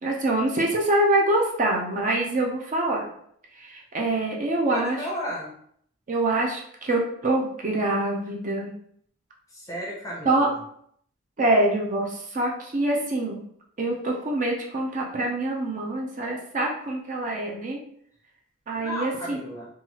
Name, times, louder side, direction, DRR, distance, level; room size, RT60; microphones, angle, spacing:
voice 1, 0.0-3.1 3.6-5.0 6.1-8.7 10.3-10.5 11.4-13.4 13.8-17.8 18.7-19.4, right 2 dB, 40° right, -1 dB, 0.4 m, -25 dB
voice 2, 4.7-5.5 9.5-10.4 18.7-19.7, equal, 15° left, -3 dB, 0.8 m, -33 dB
3.0 x 2.3 x 2.9 m, 0.67 s
head